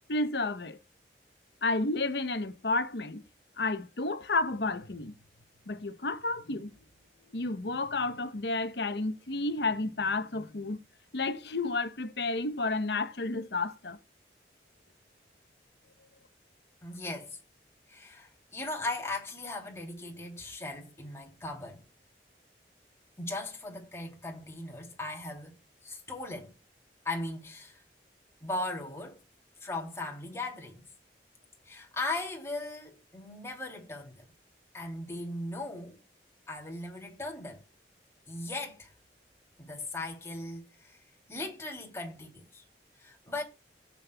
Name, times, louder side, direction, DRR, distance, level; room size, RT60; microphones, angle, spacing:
voice 1, 0.1-0.8 1.6-3.2 3.6-5.1 5.7-6.7 7.3-10.8 11.1-14.0, left 3 dB, 75° left, 0.9 m, -31 dB
voice 2, 16.8-17.4 17.9-21.8 23.2-26.5 27.0-27.8 28.4-29.2 29.6-30.8 31.6-34.3 34.7-36.0 36.5-37.6 38.3-38.9 39.6-41.0 41.3-42.6 43.0-43.4, left 2 dB, 15° left, 2.9 m, -38 dB
16.5 x 8.5 x 2.3 m
head